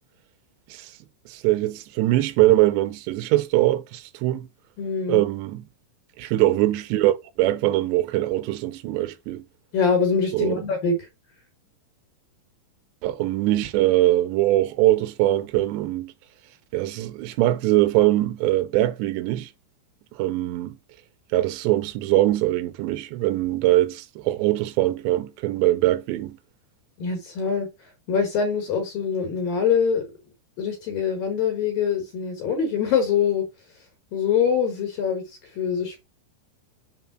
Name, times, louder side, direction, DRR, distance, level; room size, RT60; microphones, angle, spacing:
voice 1, 1.3-4.5 5.1-5.7 6.2-9.4 10.3-10.6 13.0-16.1 16.7-19.5 20.1-20.8 21.3-26.4, right 16 dB, 85° right, 3.0 m, -22 dB
voice 2, 4.8-5.2 9.7-11.1 27.0-27.7 28.1-30.0 30.6-33.4 34.1-36.0, left 6 dB, 60° left, 2.9 m, -24 dB
6.6 x 3.6 x 6.0 m
omnidirectional pair, 5.0 m